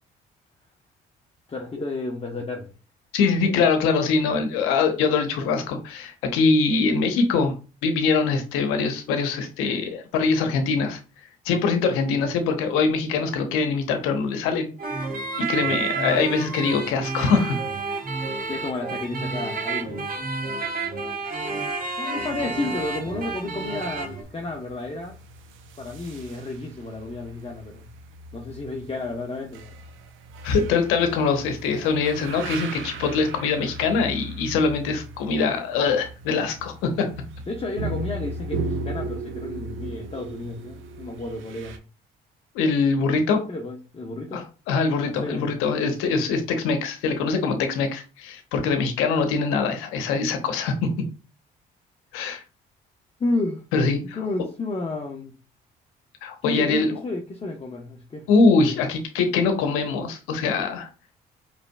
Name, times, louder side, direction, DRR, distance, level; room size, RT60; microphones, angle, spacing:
voice 1, 1.5-2.7 3.4-3.5 18.5-20.2 22.0-25.2 25.8-27.8 28.3-29.7 37.5-41.8 43.3-44.5 45.0-45.6 45.8-46.2 50.5-50.6 53.2-53.6 54.1-55.3 56.4-58.3 58.7-58.8, left 2 dB, 30° left, 1.0 m, -32 dB
voice 2, 3.1-7.5 7.8-11.0 11.4-14.7 15.0-15.1 15.4-17.6 30.4-37.1 42.5-43.4 44.3-50.9 52.1-52.4 53.7-54.2 56.2-56.9 58.3-60.9, left 4 dB, 85° left, 0.9 m, -23 dB
sound 1, 14.8-24.2, right 4 dB, 45° right, 1.3 m, -30 dB
sound 2, 22.2-41.8, right 2 dB, 70° right, 0.7 m, -37 dB
5.1 x 3.4 x 2.3 m
supercardioid pair, 60°, 21 cm